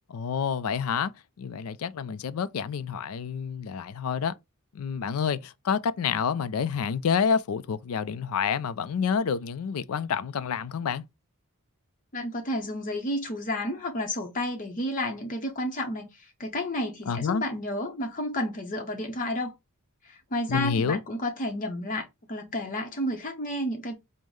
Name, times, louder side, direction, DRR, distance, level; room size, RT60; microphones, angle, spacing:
voice 1, 0.1-1.1 1.4-4.3 4.7-11.0 17.1-17.4 20.5-21.0, left 6 dB, 70° left, 0.4 m, -28 dB
voice 2, 12.1-19.5 20.0-23.9, left 1 dB, 35° left, 0.7 m, -31 dB
5.3 x 2.1 x 3.1 m
head